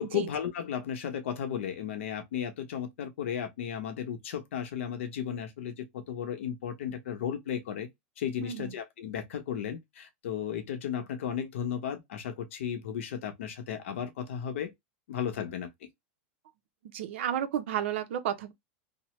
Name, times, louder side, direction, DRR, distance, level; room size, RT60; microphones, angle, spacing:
voice 1, 0.0-7.9 8.2-14.7 15.1-15.7, left 8 dB, 80° left, 0.8 m, -34 dB
voice 2, 16.9-18.5, right 10 dB, 65° right, 0.7 m, -32 dB
3.0 x 2.1 x 3.0 m
supercardioid pair, 160°, 7 cm